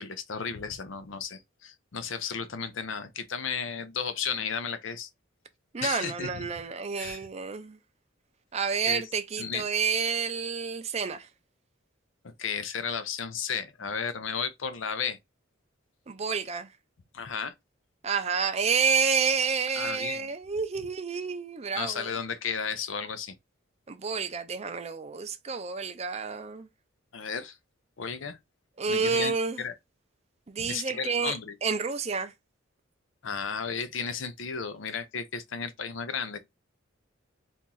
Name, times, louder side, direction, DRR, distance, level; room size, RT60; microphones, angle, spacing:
voice 1, 0.0-5.1 5.8-6.5 7.0-7.2 8.8-9.0 9.4-9.6 12.2-15.2 17.1-17.5 19.8-20.3 21.7-23.3 27.1-27.6 28.0-28.4 28.9-29.3 29.6-29.7 30.6-31.6 33.2-36.4, left 6 dB, 70° left, 0.6 m, -34 dB
voice 2, 5.7-7.8 8.5-11.3 16.1-16.7 18.0-22.1 23.9-26.7 28.8-29.6 30.5-31.3 31.6-32.3, right 5 dB, 35° right, 0.5 m, -29 dB
2.9 x 2.6 x 3.7 m
head